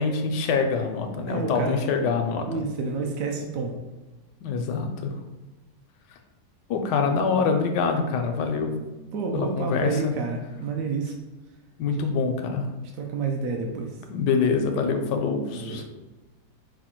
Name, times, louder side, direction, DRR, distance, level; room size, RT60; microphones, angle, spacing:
voice 1, 0.0-2.5 4.4-5.1 6.7-8.7 9.3-10.1 11.8-12.7 14.1-15.8, left 5 dB, 90° left, 4 dB, 1.2 m, -25 dB
voice 2, 1.3-1.8 2.5-3.7 9.1-11.1 11.9-12.0 12.9-14.0 15.5-15.8, right 4 dB, 70° right, 2 dB, 0.9 m, -29 dB
4.9 x 2.3 x 4.3 m, 1.1 s
omnidirectional pair, 1.8 m